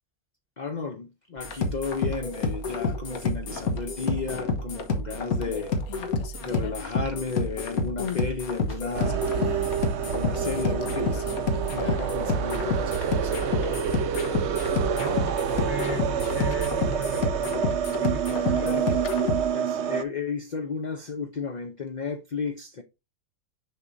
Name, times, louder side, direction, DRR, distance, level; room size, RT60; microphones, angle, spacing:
voice 1, 0.6-5.7 6.4-9.2 10.0-11.4 11.7-13.9 18.5-22.8, left 5 dB, 45° left, 0.6 m, -34 dB
sound 1, 1.4-19.5, left 3 dB, 80° left, 1.6 m, -29 dB
sound 2, 4.6-5.0 5.4-7.5 8.0-8.3 8.7-9.7 10.4-12.2 12.5-12.6 16.1-16.8 17.7-19.2, left 8 dB, 60° left, 1.0 m, -40 dB
sound 3, 8.9-20.0, right 7 dB, 60° right, 0.8 m, -28 dB
voice 2, 15.0-17.5 18.0-18.8, right 2 dB, 10° right, 0.9 m, -37 dB
6.8 x 6.0 x 2.6 m
omnidirectional pair, 1.5 m